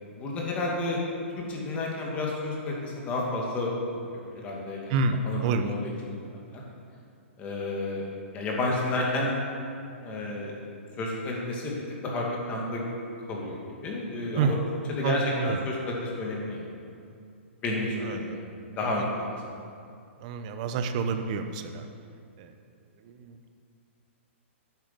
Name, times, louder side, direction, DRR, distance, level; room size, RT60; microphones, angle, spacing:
voice 1, 0.2-1.0 1.4-3.7 4.2-4.9 5.2-5.8 6.0-6.2 6.5-6.6 7.4-8.0 8.3-9.3 10.0-10.5 11.0-11.8 12.0-12.8 13.3-13.6 13.8-14.6 14.9-16.6 17.6-18.4 18.8-19.3, left 2 dB, 20° left, -3 dB, 2.3 m, -30 dB
voice 2, 4.9-5.7 14.3-14.6 15.0-15.7 18.0-18.4 19.0-19.3 20.2-21.9 22.4-22.5 23.0-23.5, right 4 dB, 35° right, 8 dB, 0.9 m, -29 dB
10.0 x 9.4 x 7.6 m, 2.4 s
hypercardioid pair, 165°, 7 cm